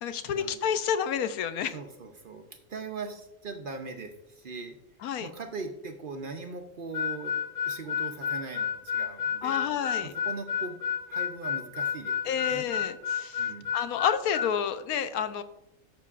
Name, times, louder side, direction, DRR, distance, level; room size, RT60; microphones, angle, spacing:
voice 1, 0.0-1.8 5.0-5.3 9.4-10.1 12.3-15.4, left 8 dB, 85° left, 11 dB, 1.1 m, -30 dB
voice 2, 1.7-4.8 5.2-7.4 7.6-9.7 10.2-10.8 11.1-12.7 13.4-13.7, right 4 dB, 50° right, 5 dB, 0.6 m, -40 dB
Harmonica, 6.9-14.5, left 8 dB, 60° left, 2.0 m, -30 dB
13.5 x 6.0 x 2.4 m, 0.83 s
omnidirectional pair, 1.5 m